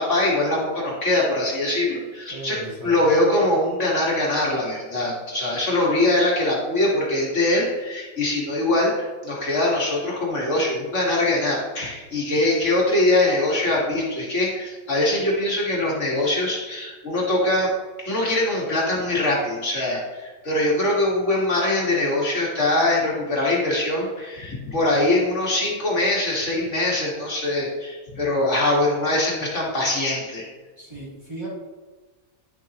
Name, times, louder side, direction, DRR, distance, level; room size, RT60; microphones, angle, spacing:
voice 1, 0.0-17.7 18.0-30.5, left 1 dB, 55° left, -4 dB, 2.0 m, -22 dB
voice 2, 2.3-3.0 29.8-29.9 30.8-31.5, right 2 dB, 20° right, -7 dB, 2.7 m, -36 dB
10.5 x 7.2 x 2.9 m, 1.3 s
omnidirectional pair, 1.5 m